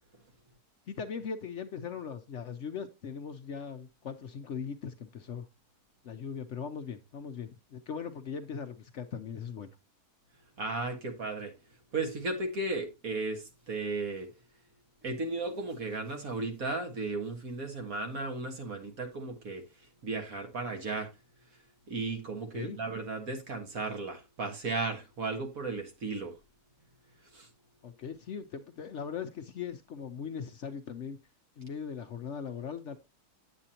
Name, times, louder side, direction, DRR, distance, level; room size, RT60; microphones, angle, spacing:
voice 1, 0.9-5.5 6.0-9.7 22.5-22.8 27.8-31.2 31.6-33.0, left 6 dB, 60° left, 0.9 m, -39 dB
voice 2, 10.6-11.5 11.9-14.3 15.0-19.6 20.0-21.1 21.9-26.3 27.3-27.5, right 3 dB, 65° right, 2.0 m, -35 dB
8.7 x 8.2 x 2.8 m
omnidirectional pair, 1.6 m